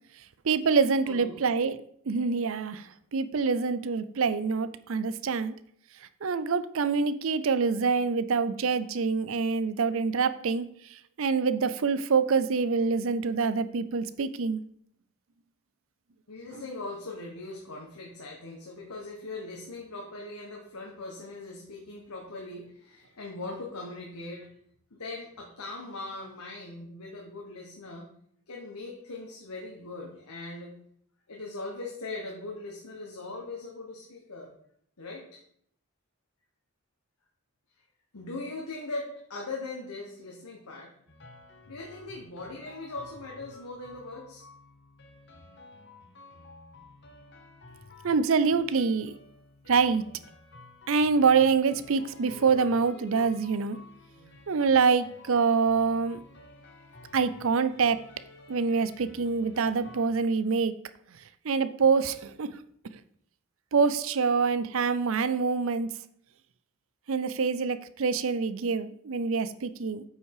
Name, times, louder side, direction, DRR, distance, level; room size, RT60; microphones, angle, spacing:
voice 1, 0.4-1.8 2.1-5.5 6.2-14.6 48.0-49.1 49.7-50.0 50.9-53.8 54.5-56.2 57.1-58.0 58.5-60.7 61.4-62.6 63.7-65.9 67.1-70.0, right 5 dB, 65° right, 13 dB, 0.5 m, -26 dB
voice 2, 1.1-1.4 16.3-24.5 24.9-28.1 28.5-30.7 31.3-34.5 35.0-35.4 38.1-40.9 41.7-44.4, left 2 dB, 85° left, -1 dB, 1.4 m, -40 dB
sound 1, 41.1-60.1, left 3 dB, 50° left, 1.3 m, -51 dB
8.3 x 5.4 x 4.8 m, 0.68 s
head